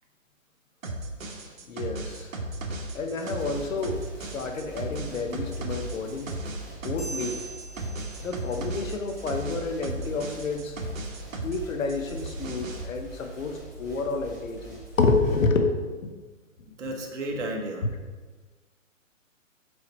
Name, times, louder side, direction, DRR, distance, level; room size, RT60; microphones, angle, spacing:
sound 1, 0.8-11.6 11.9-12.8, right 2 dB, 80° right, 1.2 m, -35 dB
voice 1, 1.6-2.3 2.9-6.3 6.8-7.4 8.2-10.8 11.4-16.1 17.3-17.4, left 3 dB, 80° left, 5 dB, 0.9 m, -29 dB
sound 2, 3.2-15.4, right 2 dB, 15° right, 0.4 m, -45 dB
sound 3, 7.0-8.8, right 3 dB, 30° left, 0.9 m, -41 dB
voice 2, 16.6-17.9, right 1 dB, 60° right, 2 dB, 1.2 m, -33 dB
4.9 x 4.6 x 4.2 m, 1.3 s
hypercardioid pair, 160°, 39 cm